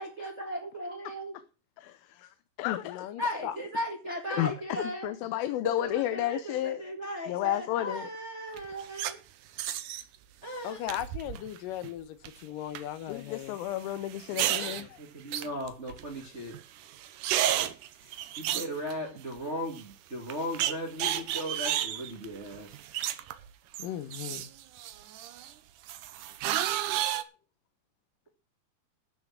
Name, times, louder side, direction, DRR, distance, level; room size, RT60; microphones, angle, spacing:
voice 1, 0.0-1.3 3.2-5.1 5.6-9.2 10.4-10.8 14.3-16.5 18.4-22.7, equal, 25° right, 1.7 m, -37 dB
voice 2, 1.8-3.1 4.3-6.8 7.3-8.1 13.1-14.9 18.0-18.1, left 14 dB, 90° left, 2.6 m, -32 dB
voice 3, 2.8-3.6 10.6-13.6 14.6-14.8 23.8-24.5 27.2-27.3, left 11 dB, 75° left, 2.6 m, -38 dB
sound 1, 8.6-9.1 9.6-10.0 10.9-11.6 11.8-12.3 12.8-12.9 14.1-14.8 15.3-16.2 16.5-16.6 16.9-19.4 19.8-19.9 20.3-23.5 23.7-25.5 25.9-27.2, right 12 dB, 75° right, 2.3 m, -32 dB
12.5 x 6.3 x 7.4 m
omnidirectional pair, 4.1 m